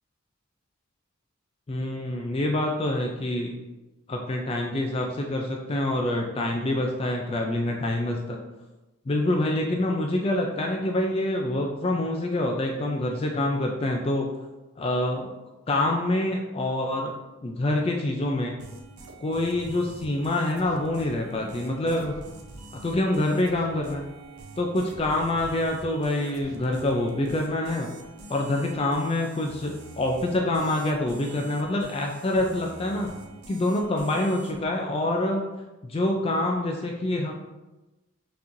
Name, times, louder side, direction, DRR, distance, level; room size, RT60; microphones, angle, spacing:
voice 1, 1.7-3.6 4.1-8.4 9.1-14.3 14.8-15.3 15.7-17.2 17.4-18.5 19.2-22.1 22.8-24.1 24.6-27.9 28.3-33.1 33.5-35.4 35.8-37.3, left 1 dB, 25° left, 1 dB, 0.3 m, -26 dB
sound 1, 18.6-34.6, right 2 dB, 90° right, 0.7 m, -45 dB
5.7 x 3.0 x 2.6 m, 1.1 s
head